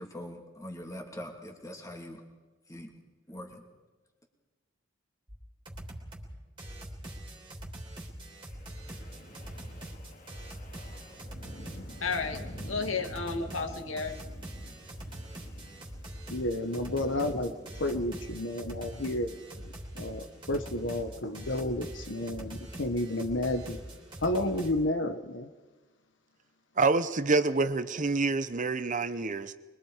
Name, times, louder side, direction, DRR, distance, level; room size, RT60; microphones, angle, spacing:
voice 1, 0.0-2.2 2.7-2.9 3.3-3.6, left 1 dB, 15° left, 2 dB, 2.9 m, -42 dB
sound 1, 5.3-5.4 5.7-6.3 6.6-24.7, right 1 dB, 25° right, 3.3 m, -43 dB
Wind, 8.3-18.5, equal, 45° left, 2.4 m, -49 dB
voice 2, 12.0-12.4 12.7-14.1, left 4 dB, 80° left, 4 dB, 2.4 m, -32 dB
voice 3, 16.3-23.8 24.2-25.5, left 1 dB, 65° left, 6 dB, 1.3 m, -31 dB
voice 4, 26.8-29.5, right 3 dB, 40° right, 12 dB, 0.8 m, -27 dB
24.5 x 22.5 x 5.0 m, 1.3 s
head